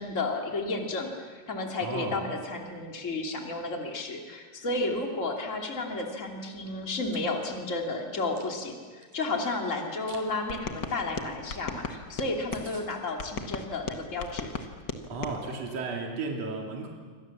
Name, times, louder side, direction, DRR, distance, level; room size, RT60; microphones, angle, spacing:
voice 1, 0.0-14.5, left 2 dB, 25° left, 2 dB, 3.1 m, -32 dB
voice 2, 1.8-2.2 15.1-16.9, right 3 dB, 60° right, 0 dB, 3.6 m, -34 dB
Chewing mastication, 6.8-7.2 7.7-9.2 9.8-10.3 10.6-10.8 11.1-11.2 11.5-11.6 11.9-12.0 12.2-12.3 12.5-12.9, right 5 dB, 80° right, 4.7 m, -52 dB
sound 1, 10.5-12.7 13.2-15.4, left 4 dB, 45° left, 1.8 m, -36 dB
28.0 x 25.0 x 7.4 m, 1.5 s
omnidirectional pair, 3.4 m